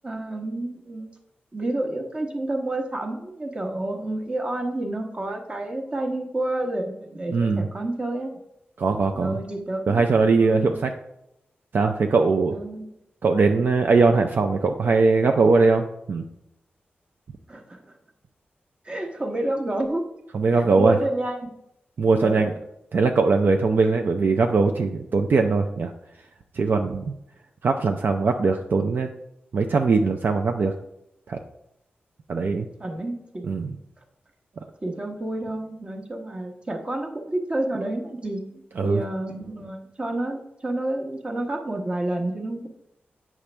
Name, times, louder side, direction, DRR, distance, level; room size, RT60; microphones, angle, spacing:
voice 1, 0.0-1.1 1.5-8.4 9.2-10.0 10.4-10.7 12.5-12.9 17.5-17.9 18.8-20.0 20.6-21.5 22.2-22.5 32.8-33.5 34.8-42.7, right 1 dB, 25° right, 2 dB, 1.0 m, -29 dB
voice 2, 7.3-7.7 8.8-9.4 9.9-10.9 11.7-12.6 13.2-16.2 20.3-21.0 22.0-22.5 22.9-25.9 26.5-27.0 27.6-29.1 29.5-30.7 31.3-31.4 32.3-32.7 33.4-33.8 38.8-39.0, right 4 dB, 55° right, 5 dB, 0.4 m, -21 dB
8.4 x 6.1 x 3.3 m, 0.82 s
wide cardioid pair, 140°, 4 cm